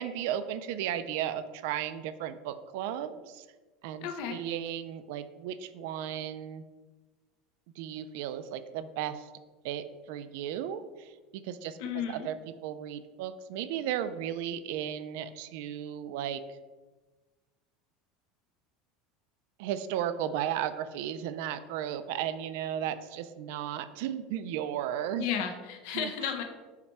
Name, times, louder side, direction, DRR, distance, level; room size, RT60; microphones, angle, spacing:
voice 1, 0.0-3.5 3.8-6.6 7.8-9.3 9.6-16.6 19.6-25.3 25.9-26.1, right 10 dB, 70° right, 12 dB, 0.3 m, -35 dB
voice 2, 4.0-4.4 11.8-12.3 25.2-26.4, left 8 dB, 65° left, 4 dB, 0.5 m, -33 dB
5.7 x 2.2 x 4.1 m, 1.3 s
supercardioid pair, 145°, 0 cm